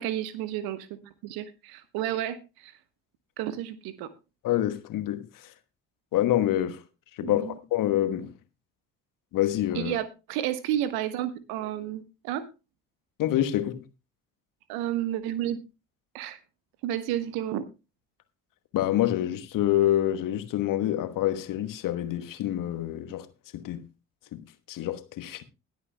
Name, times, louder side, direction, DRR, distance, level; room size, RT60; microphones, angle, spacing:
voice 1, 0.0-2.7 3.4-4.1 7.2-7.6 9.7-12.5 14.7-15.6 16.1-16.4 16.8-17.6, right 12 dB, 60° right, 1.3 m, -31 dB
voice 2, 4.4-5.3 6.1-6.8 7.2-8.3 9.3-9.9 13.2-13.8 18.7-23.3 23.5-23.9 24.3-25.4, left 13 dB, 50° left, 1.2 m, -27 dB
20.5 x 8.6 x 2.2 m
figure-of-eight pair, 45°, 41 cm